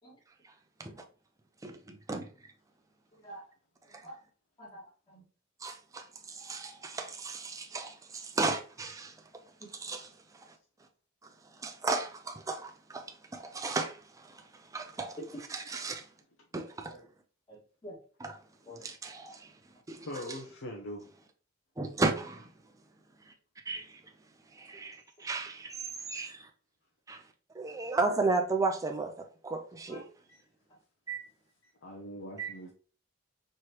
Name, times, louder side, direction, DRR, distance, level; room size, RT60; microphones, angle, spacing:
voice 1, 1.6-2.3 3.9-4.0 5.6-9.1 9.8-10.0 11.6-13.0 13.3-14.4 14.7-15.2 15.5-16.1 16.5-16.9 18.8-19.5 19.9-20.1 21.8-22.5 23.7-24.0 24.5-26.5 27.1-27.2 27.5-30.0 31.1-31.2 32.4-32.5, right 3 dB, 15° right, 0.4 m, -34 dB
voice 2, 3.1-3.4 3.9-4.2 4.6-5.2 9.6-9.7 16.9-17.0 17.5-18.0 18.6-18.9 20.2-20.3 29.9-30.0, equal, 25° left, 1.8 m, -49 dB
voice 3, 20.0-21.1 30.3-30.4 31.6-32.7, equal, 75° left, 0.8 m, -42 dB
4.7 x 3.1 x 3.0 m
head